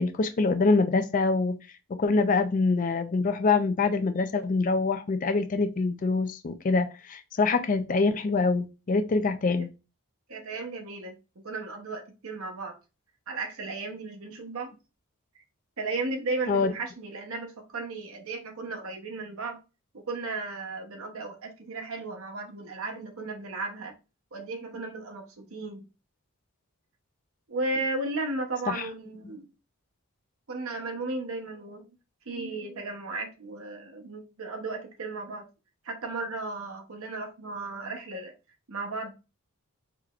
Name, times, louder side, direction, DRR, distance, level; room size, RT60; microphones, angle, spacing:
voice 1, 0.0-1.6 2.0-9.7 16.5-16.7 28.7-28.9, left 3 dB, 35° left, 0.3 m, -25 dB
voice 2, 10.3-11.1 11.4-12.8 13.3-14.7 15.8-19.6 19.9-23.9 24.3-25.8 27.5-29.5 30.5-31.8 32.3-35.5 35.8-38.3 38.7-39.1, right 3 dB, 70° right, 0.9 m, -35 dB
4.8 x 3.0 x 2.4 m
head